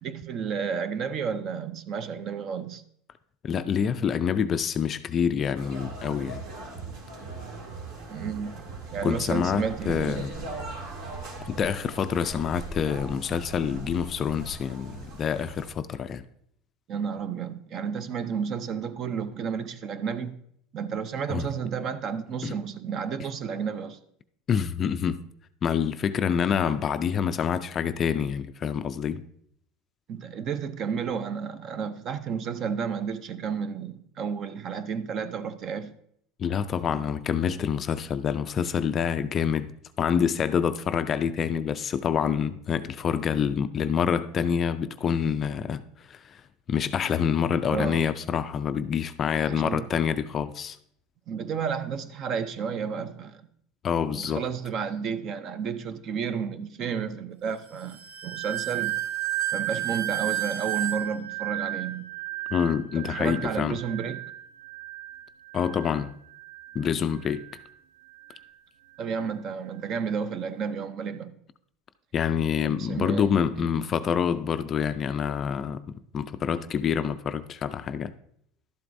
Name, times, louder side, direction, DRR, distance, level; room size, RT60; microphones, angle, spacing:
voice 1, 0.0-2.8 8.1-8.6 8.9-10.3 16.9-20.4 20.7-24.0 30.1-35.9 47.7-48.1 49.4-49.9 51.3-53.5 54.2-59.0 59.5-62.1 63.0-64.2 69.0-71.3 72.6-73.7, right 6 dB, 35° right, 0.5 m, -32 dB
voice 2, 3.4-6.4 9.0-10.3 11.4-16.3 21.3-21.5 22.4-22.6 24.5-25.2 25.6-29.2 36.4-39.7 40.0-46.4 46.7-50.8 53.8-54.4 62.5-63.8 65.5-66.1 66.7-67.4 72.1-78.1, left 7 dB, 25° left, 0.3 m, -27 dB
sound 1, 5.5-15.7, right 3 dB, 60° right, 2.3 m, -39 dB
sound 2, 57.9-66.9 67.2-67.7 68.2-68.4, right 15 dB, 90° right, 0.8 m, -33 dB
12.0 x 7.7 x 2.6 m
supercardioid pair, 155°, 0 cm